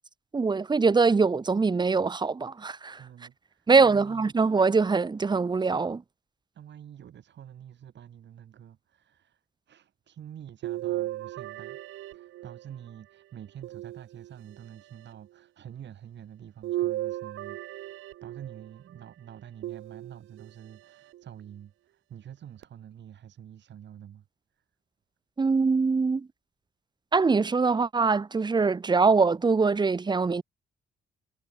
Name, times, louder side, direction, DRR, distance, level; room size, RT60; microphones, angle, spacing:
voice 1, 0.3-3.0 3.7-6.0 25.4-26.3 27.1-30.4, right 4 dB, 20° right, 0.8 m, -23 dB
voice 2, 3.0-4.3 6.5-24.3 24.5-24.6, right 10 dB, 65° right, 5.6 m, -47 dB
sound 1, 10.6-12.9 13.6-14.6 16.6-18.7 19.6-20.5 21.1-21.2 22.6-22.7, right 14 dB, 85° right, 2.2 m, -35 dB
cardioid pair, 90°, 20 cm